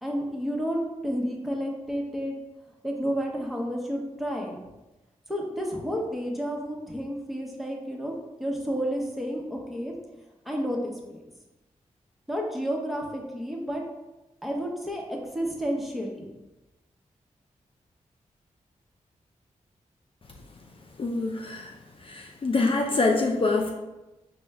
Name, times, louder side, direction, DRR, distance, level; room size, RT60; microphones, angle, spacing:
voice 1, 0.0-2.3 2.8-4.6 5.3-8.1 8.4-9.9 10.5-11.2 12.3-13.8 14.4-16.3, equal, ahead, -1 dB, 0.9 m, -31 dB
voice 2, 21.0-21.7 22.0-23.7, left 3 dB, 40° left, 1 dB, 0.4 m, -25 dB
4.4 x 2.1 x 3.4 m, 1.0 s
supercardioid pair, 40°, 14 cm